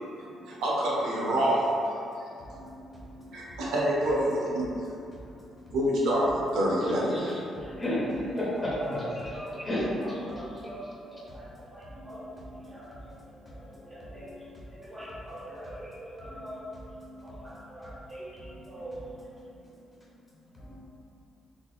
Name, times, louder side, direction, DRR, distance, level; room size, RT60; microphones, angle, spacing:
voice 1, 0.5-2.0 3.3-4.7 5.7-7.3, right 1 dB, 85° right, -6 dB, 0.6 m, -26 dB
voice 2, 2.4-3.4 5.1-5.2 7.1-7.3 7.6-9.3 9.6-10.7 11.8-12.3 12.7-13.3 13.8-14.5 17.0-17.2 18.6-18.7 20.5-20.8, left 1 dB, 15° left, -7 dB, 0.9 m, -35 dB
voice 3, 8.5-9.6 10.0-12.2 12.7-13.0 13.4-14.4 14.7-16.7 17.2-18.4 18.7-19.3, equal, 30° right, -10 dB, 1.0 m, -43 dB
2.8 x 2.0 x 2.3 m, 2.6 s
cardioid pair, 95°, 0 cm